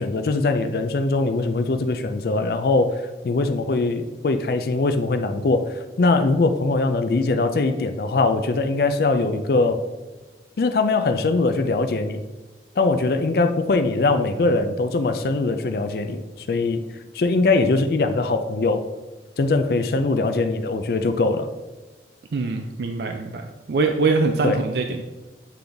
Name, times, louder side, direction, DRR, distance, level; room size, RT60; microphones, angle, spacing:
voice 1, 0.0-9.8 10.6-12.2 12.8-16.8 17.1-18.9 19.4-21.5 24.4-24.6, left 3 dB, 55° left, 8 dB, 0.4 m, -21 dB
voice 2, 22.3-25.0, right 3 dB, 65° right, 5 dB, 0.4 m, -23 dB
8.3 x 3.9 x 3.4 m, 1.2 s
head